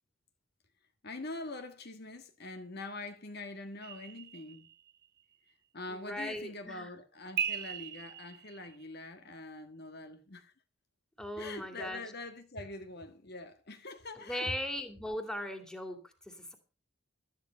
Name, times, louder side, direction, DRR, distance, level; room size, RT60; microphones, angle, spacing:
voice 1, 1.0-4.7 5.5-10.5 11.4-14.5, left 2 dB, 50° left, 1.6 m, -44 dB
sound 1, 3.8-5.1 7.4-8.8, right 7 dB, 50° right, 1.3 m, -38 dB
voice 2, 5.9-6.9 11.2-12.0 14.3-16.6, left 1 dB, 5° left, 2.5 m, -38 dB
13.0 x 10.5 x 5.5 m
head